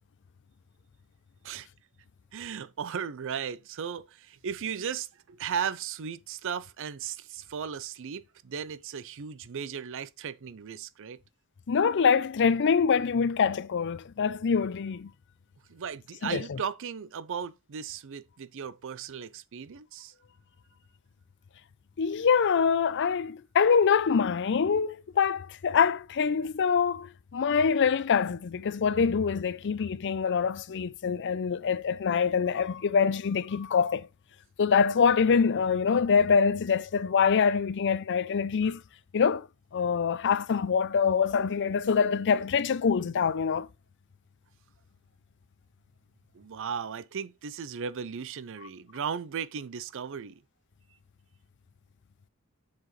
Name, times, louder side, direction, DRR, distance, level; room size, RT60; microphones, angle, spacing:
voice 1, 2.3-11.2 15.7-20.1 46.3-50.4, right 7 dB, 60° right, 0.5 m, -36 dB
voice 2, 11.7-15.1 16.2-16.6 22.0-34.1 34.6-38.8 39.1-39.5 39.7-43.7, left 6 dB, 55° left, 0.5 m, -25 dB
7.4 x 5.9 x 3.1 m
head